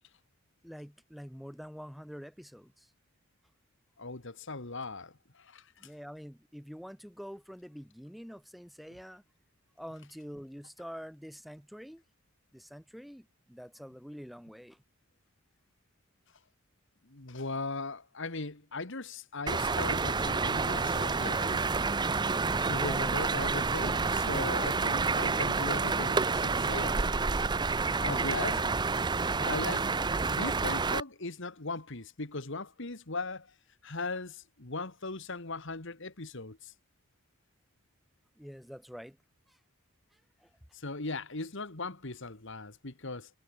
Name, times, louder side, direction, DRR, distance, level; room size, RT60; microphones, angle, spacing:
voice 1, 0.6-2.9 5.8-9.2 9.8-12.0 12.5-14.8 22.2-23.2 27.5-28.8 38.4-39.2 39.5-39.6 40.1-40.5, equal, ahead, 2.2 m, -46 dB
voice 2, 4.0-5.7 17.1-21.6 22.6-27.0 28.0-28.8 29.1-33.5 33.8-36.7 40.7-43.3, left 3 dB, 60° left, 2.1 m, -38 dB
sound 1, 19.5-31.0, right 4 dB, 20° right, 0.5 m, -29 dB
head